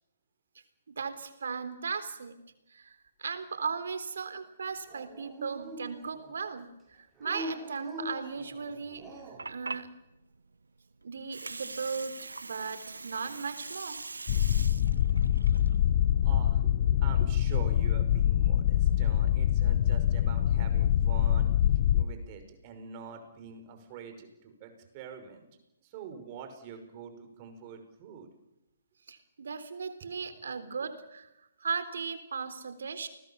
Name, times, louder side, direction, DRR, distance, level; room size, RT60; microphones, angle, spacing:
voice 1, 1.0-2.4 2.7-9.0 9.5-9.9 11.0-14.0 29.1-31.3 31.6-33.1, right 5 dB, 65° right, 11 dB, 3.6 m, -37 dB
Dog, 4.9-6.4 7.2-9.5, equal, 15° right, 7.6 m, -42 dB
Water, 9.0-17.0, right 3 dB, 80° right, 1.3 m, -43 dB
sound 1, 14.3-22.0, left 11 dB, 40° left, 1.0 m, -25 dB
voice 2, 16.2-21.5 21.9-25.5 25.8-28.3 30.2-30.3, right 6 dB, 30° right, 6 dB, 5.8 m, -45 dB
30.0 x 20.5 x 7.3 m, 0.91 s
figure-of-eight pair, 135°, 0 cm